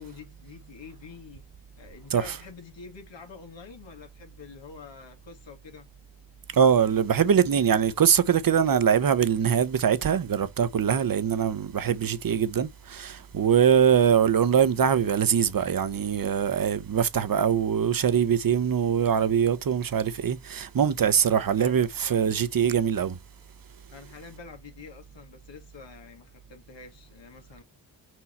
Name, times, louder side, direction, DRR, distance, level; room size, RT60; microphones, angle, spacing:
voice 1, 0.0-1.4 1.8-5.9 21.4-21.8 23.9-27.6, left 5 dB, 90° left, 1.8 m, -46 dB
voice 2, 6.5-23.2, right 8 dB, 50° right, 0.8 m, -23 dB
5.4 x 4.6 x 4.2 m
wide cardioid pair, 80°, 43 cm